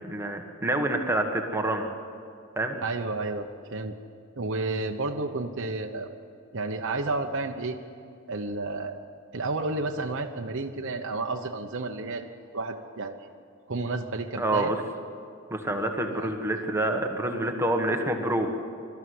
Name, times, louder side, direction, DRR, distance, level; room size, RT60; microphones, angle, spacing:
voice 1, 0.0-1.9 2.6-2.8 14.4-14.8 15.5-18.5, right 1 dB, 10° right, 3 dB, 1.4 m, -27 dB
voice 2, 2.8-3.9 4.4-6.1 6.5-7.8 8.3-9.0 9.3-12.3 12.5-13.3 13.7-14.7 16.1-16.3, right 3 dB, 60° right, 2 dB, 1.0 m, -31 dB
22.0 x 13.0 x 9.5 m, 2.4 s
head